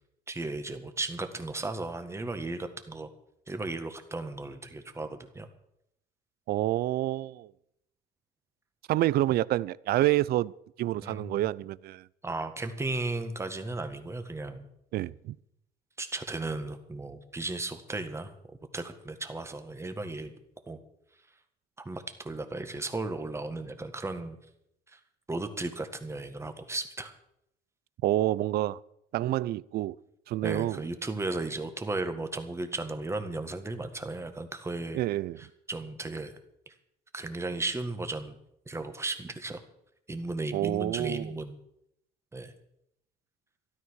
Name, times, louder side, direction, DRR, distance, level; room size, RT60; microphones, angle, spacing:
voice 1, 0.3-3.1 3.5-5.5 11.0-11.4 12.2-14.7 16.0-18.3 18.7-20.3 20.7-20.8 21.8-24.4 24.9-25.0 25.3-27.1 30.4-35.0 35.4-36.3 36.7-36.8 37.1-38.4 38.7-39.6 40.1-41.6 42.3-42.5, right 2 dB, 15° right, 1.7 m, -35 dB
voice 2, 6.5-7.5 8.9-10.5 10.8-12.1 14.9-15.4 28.0-28.8 29.1-30.0 30.3-30.8 34.9-35.4 40.5-41.3, right 15 dB, 70° right, 0.5 m, -28 dB
13.0 x 12.5 x 6.4 m
cardioid pair, 110°, 17 cm